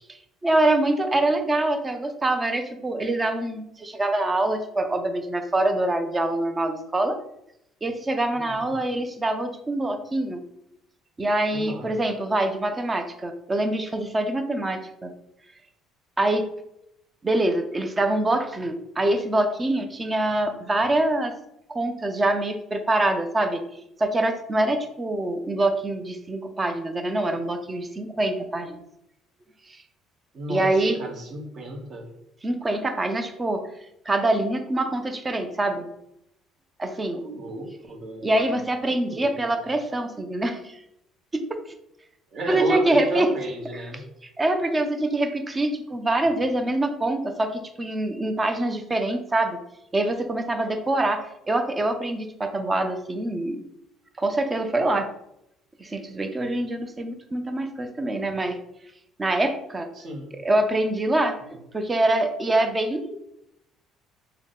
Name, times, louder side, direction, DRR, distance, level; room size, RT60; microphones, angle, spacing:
voice 1, 0.4-7.2 7.8-10.4 11.2-15.1 16.2-16.5 17.2-21.3 21.7-23.6 24.0-28.8 29.7-29.8 30.5-31.0 32.4-33.6 34.1-35.9 36.8-37.2 38.2-40.8 41.3-41.6 42.5-43.3 44.4-49.6 49.9-53.6 54.2-55.1 55.8-58.6 59.2-59.9 60.4-63.2, right 2 dB, 20° right, 6 dB, 0.5 m, -25 dB
voice 2, 8.3-8.7 11.5-11.9 30.3-32.0 37.1-38.5 38.8-39.4 42.3-44.0 59.9-60.3, right 1 dB, 45° right, 1 dB, 1.1 m, -33 dB
3.6 x 2.2 x 3.7 m, 0.80 s
supercardioid pair, 90°, 0 cm